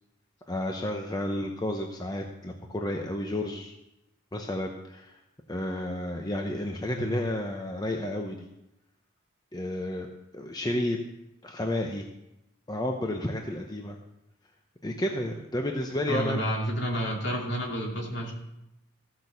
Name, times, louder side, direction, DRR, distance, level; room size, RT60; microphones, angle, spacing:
voice 1, 0.5-3.7 4.3-5.2 5.5-8.5 9.5-10.1 10.3-11.0 11.4-12.0 12.7-14.0 14.8-16.4, left 1 dB, 20° left, 3 dB, 0.8 m, -31 dB
voice 2, 6.9-7.2 16.1-18.3, equal, 55° left, -1 dB, 3.0 m, -30 dB
14.5 x 6.1 x 6.9 m, 0.89 s
head